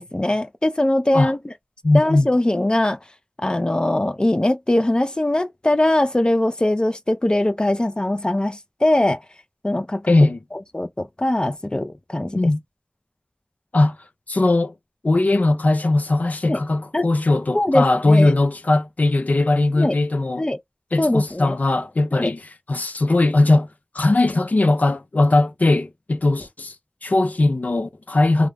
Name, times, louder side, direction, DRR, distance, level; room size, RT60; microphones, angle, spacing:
voice 1, 0.0-1.4 1.9-3.0 3.4-9.2 9.6-10.1 10.7-12.5 16.5-16.6 16.9-17.0 17.5-18.3 19.7-20.0 20.4-20.6 21.0-21.6 22.2-22.3, left 1 dB, 35° left, 0.4 m, -21 dB
voice 2, 1.8-2.3 10.1-10.4 12.3-12.6 13.7-14.0 14.3-14.7 15.0-20.5 20.9-22.4 22.7-23.7 23.9-26.7 27.0-28.5, left 2 dB, 80° left, 0.6 m, -19 dB
2.4 x 2.0 x 3.3 m
wide cardioid pair, 45°, 3 cm